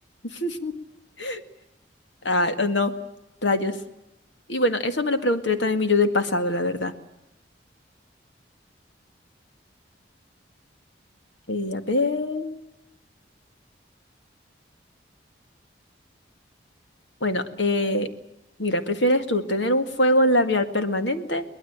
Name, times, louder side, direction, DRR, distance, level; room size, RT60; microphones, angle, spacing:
voice 1, 0.4-0.7 1.2-1.4 2.2-2.9 3.4-3.8 4.5-6.9 11.5-12.6 17.2-18.1 18.6-21.4, left 1 dB, 75° left, 9 dB, 2.1 m, -23 dB
23.5 x 20.0 x 8.9 m, 0.94 s
head